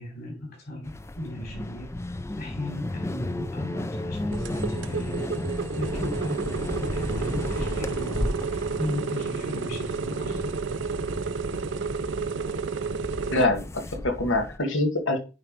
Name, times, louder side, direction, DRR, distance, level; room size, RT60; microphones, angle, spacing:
voice 1, 0.0-2.0 2.4-5.4 5.7-10.6, left 1 dB, 55° left, 3.9 m, -36 dB
sound 1, 0.8-14.6, left 1 dB, 15° left, 0.4 m, -34 dB
sound 2, 4.3-13.4, right 5 dB, 65° right, 0.5 m, -31 dB
voice 2, 13.3-15.2, left 2 dB, 90° left, 1.6 m, -25 dB
9.5 x 3.2 x 5.0 m
head